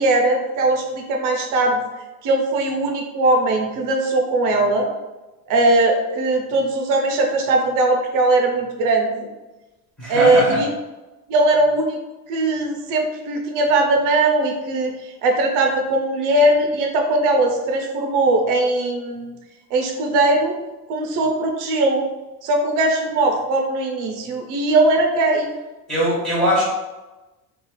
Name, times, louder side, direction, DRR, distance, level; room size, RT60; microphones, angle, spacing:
voice 1, 0.0-1.8 2.2-4.9 5.5-9.3 10.1-10.7 11.3-12.0 12.3-19.3 19.7-20.5 20.9-22.1 22.4-25.5, right 2 dB, 55° right, 2 dB, 0.6 m, -19 dB
voice 2, 10.0-10.6 25.9-26.6, equal, ahead, -9 dB, 0.7 m, -20 dB
2.4 x 2.4 x 2.9 m, 1.1 s
cardioid pair, 170°, 39 cm